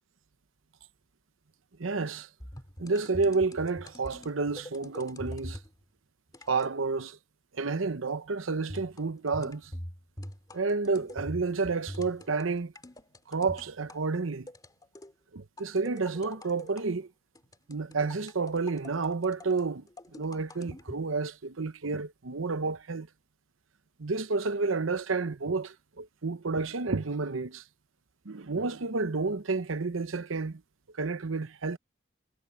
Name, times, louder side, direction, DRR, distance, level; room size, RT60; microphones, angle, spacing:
voice 1, 1.8-2.3 2.8-5.6 6.5-7.2 7.5-9.7 10.5-12.7 13.3-14.5 15.3-17.1 17.7-19.8 20.1-23.1 24.0-27.6 28.2-30.6 30.9-31.8, right 4 dB, 75° right, 0.9 m, -30 dB
sound 1, 2.4-5.7 6.3-6.8 8.7-14.0 14.5-15.1 15.6-16.9 17.4-21.0, left 1 dB, 20° left, 2.5 m, -44 dB
head